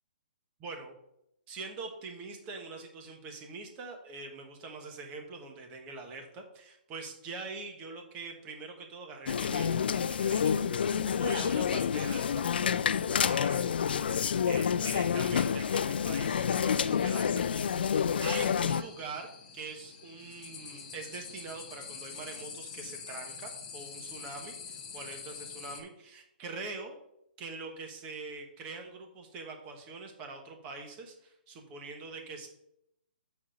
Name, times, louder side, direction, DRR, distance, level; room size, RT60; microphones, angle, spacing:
voice 1, 0.6-0.9 1.5-10.6 11.1-12.4 13.1-13.7 14.5-17.9 18.2-27.0 27.4-32.5, right 3 dB, 20° right, 3 dB, 1.2 m, -43 dB
sound 1, 9.3-18.8, left 7 dB, 65° left, 0.4 m, -28 dB
sound 2, 16.7-25.8, left 6 dB, 40° left, 1.5 m, -46 dB
7.3 x 4.2 x 6.2 m, 0.79 s
hypercardioid pair, 165°, 6 cm